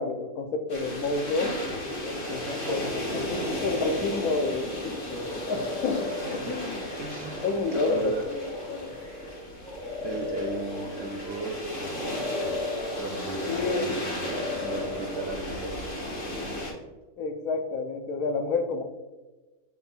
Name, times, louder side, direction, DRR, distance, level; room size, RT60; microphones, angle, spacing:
voice 1, 0.0-1.5 2.0-6.1 6.4-6.8 7.4-8.4 8.7-9.0 13.5-13.9 17.2-18.8, left 3 dB, 80° left, 7 dB, 1.0 m, -29 dB
sound 1, 0.7-16.7, left 1 dB, 55° left, 1.4 m, -35 dB
voice 2, 2.2-2.9 5.2-5.4 6.1-6.6 7.0-7.4 7.7-8.3 10.0-14.3 14.6-15.8, right 3 dB, 70° right, 1 dB, 0.6 m, -36 dB
sound 2, 3.6-4.6 5.0-11.6 11.9-13.9 14.1-15.6, left 2 dB, 5° left, 0.5 m, -36 dB
7.1 x 3.2 x 2.3 m, 1.2 s
omnidirectional pair, 1.6 m